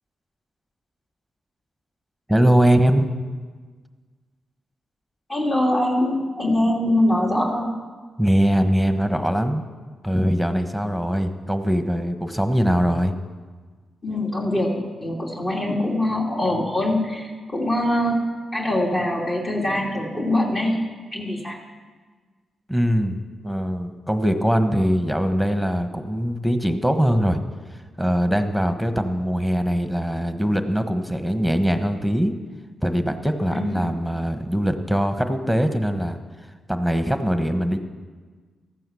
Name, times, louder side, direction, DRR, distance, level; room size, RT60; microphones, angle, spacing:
voice 1, 2.3-3.1 8.2-9.6 10.0-13.1 22.7-23.2 23.4-27.4 28.0-32.3 32.8-36.2 36.7-37.8, equal, 5° left, 8 dB, 1.3 m, -21 dB
voice 2, 5.3-7.7 14.0-18.3 18.5-20.8 21.1-21.6 33.5-33.9, left 1 dB, 40° left, -1 dB, 2.7 m, -23 dB
14.0 x 9.2 x 7.1 m, 1.5 s
supercardioid pair, 45°, 0 cm